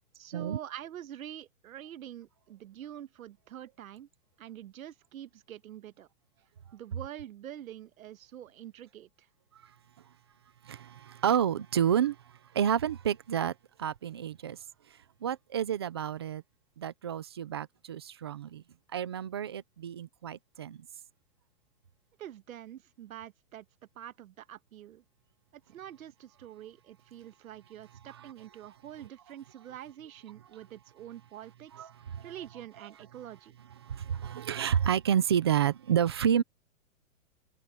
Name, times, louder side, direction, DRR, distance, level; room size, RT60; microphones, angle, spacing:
voice 1, 0.1-4.1 4.4-6.1 6.7-9.3 22.2-23.6 23.9-25.0 25.5-31.9 32.2-33.5, right 11 dB, 80° right, 1.4 m, -46 dB
voice 2, 10.6-12.2 12.5-13.5 13.8-14.6 15.2-16.4 16.8-18.6 18.9-20.9 28.2-28.3 31.7-32.3 33.8-36.4, right 9 dB, 20° right, 0.3 m, -29 dB
hypercardioid pair, 155°, 41 cm